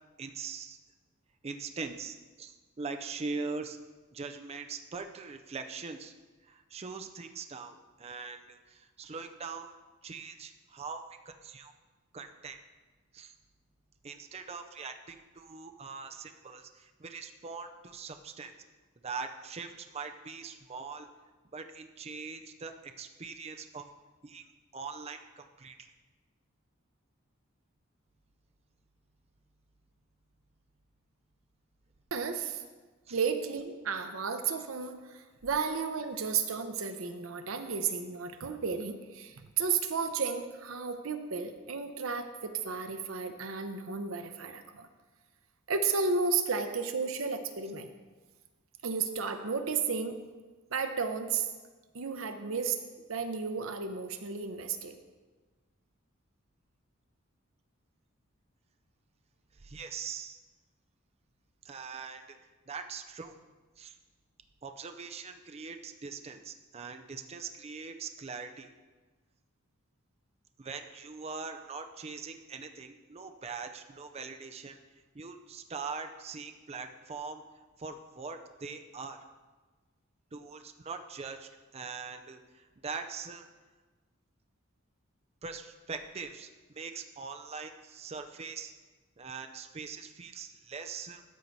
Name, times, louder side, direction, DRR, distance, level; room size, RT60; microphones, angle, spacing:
voice 1, 0.2-0.8 1.4-3.8 4.1-6.1 6.4-9.7 10.0-11.7 12.1-12.6 13.1-13.3 14.0-18.5 19.0-21.1 21.5-23.9 24.2-24.4 24.7-25.9 33.1-33.2 59.5-60.4 61.6-62.4 62.7-63.3 63.8-64.0 64.6-68.7 70.6-74.8 75.1-77.4 77.8-79.2 80.3-83.5 85.4-86.5 86.7-88.7 89.2-91.2, right 4 dB, 30° right, 6 dB, 0.5 m, -42 dB
voice 2, 32.1-32.6 33.1-44.9 45.7-47.9 48.8-50.2 50.7-51.5 51.9-52.8 53.1-54.9, right 5 dB, 80° right, 7 dB, 0.7 m, -33 dB
13.0 x 4.5 x 4.1 m, 1.3 s
head